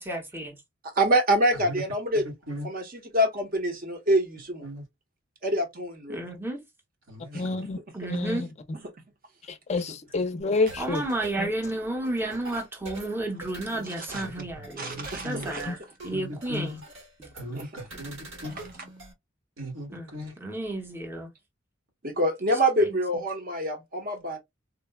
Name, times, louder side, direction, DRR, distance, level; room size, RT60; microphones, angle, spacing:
voice 1, 0.1-0.5 6.1-6.6 7.9-8.5 10.8-14.9 15.2-15.8 16.0-16.7 17.2-17.3 19.9-20.1 20.4-21.3 22.8-23.0, right 2 dB, 10° right, 0.8 m, -32 dB
voice 2, 0.9-2.2 2.6-2.9 3.1-4.7 5.4-6.2 7.3-7.5 13.8-14.2 14.8-15.6 17.5-17.7 22.0-24.4, right 1 dB, 45° right, 1.0 m, -26 dB
voice 3, 2.1-2.7 4.6-4.8 7.1-7.6 13.7-15.5 16.1-16.8 17.3-18.6 19.6-20.3, left 1 dB, 85° right, 1.7 m, -38 dB
voice 4, 7.3-7.8 8.1-8.5 9.5-11.0 11.4-11.5 15.7-15.8, left 3 dB, 35° left, 0.4 m, -28 dB
sound 1, 10.5-19.1, right 2 dB, 70° right, 1.4 m, -45 dB
3.7 x 2.2 x 2.2 m
head